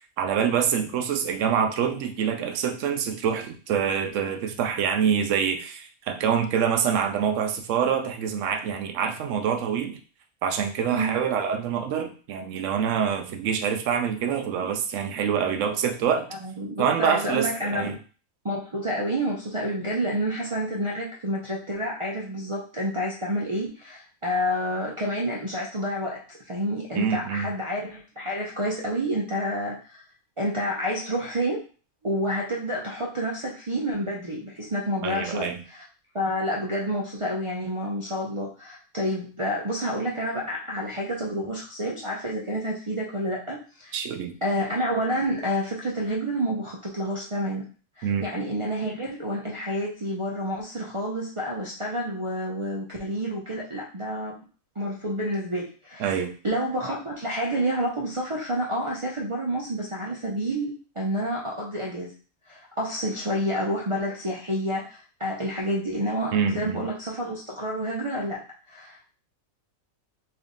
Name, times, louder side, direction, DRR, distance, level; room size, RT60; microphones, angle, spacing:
voice 1, 0.2-10.0 10.4-16.3 16.8-18.0 26.9-27.5 35.0-35.6 43.9-44.4 48.0-48.2 56.0-56.3 66.3-66.8, right 7 dB, 70° right, 6 dB, 0.9 m, -26 dB
voice 2, 16.3-18.0 18.4-30.0 30.4-31.6 32.0-35.8 36.1-43.9 44.4-47.7 48.0-54.3 54.8-62.1 62.5-69.1, equal, 55° right, -5 dB, 0.3 m, -29 dB
3.5 x 2.7 x 3.6 m, 0.38 s
omnidirectional pair, 1.5 m